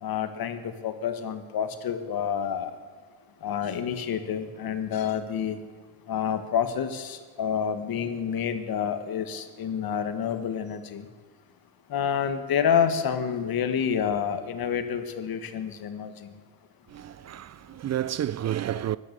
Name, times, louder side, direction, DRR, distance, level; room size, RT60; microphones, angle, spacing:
voice 1, 0.0-2.7 3.4-5.6 6.1-11.1 11.9-16.4 18.0-18.2 18.4-18.9, left 8 dB, 65° left, 1.7 m, -28 dB
sound 1, 4.5-7.7, equal, 60° right, 5.4 m, -63 dB
voice 2, 16.9-19.0, right 11 dB, 45° right, 0.4 m, -30 dB
16.5 x 11.5 x 6.8 m
cardioid pair, 85°, 39 cm